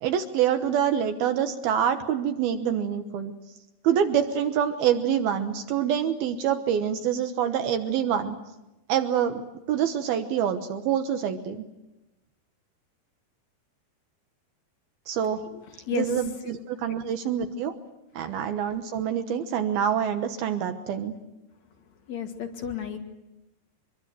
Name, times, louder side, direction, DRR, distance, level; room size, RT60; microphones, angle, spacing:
voice 1, 0.0-3.3 3.8-8.4 8.9-9.4 9.7-11.6 15.1-15.4 15.9-17.7 18.2-21.1, right 9 dB, 75° right, 8 dB, 2.9 m, -26 dB
voice 2, 15.5-16.1 22.1-23.0, left 7 dB, 50° left, 2 dB, 3.4 m, -32 dB
25.0 x 22.5 x 7.7 m, 0.99 s
omnidirectional pair, 4.6 m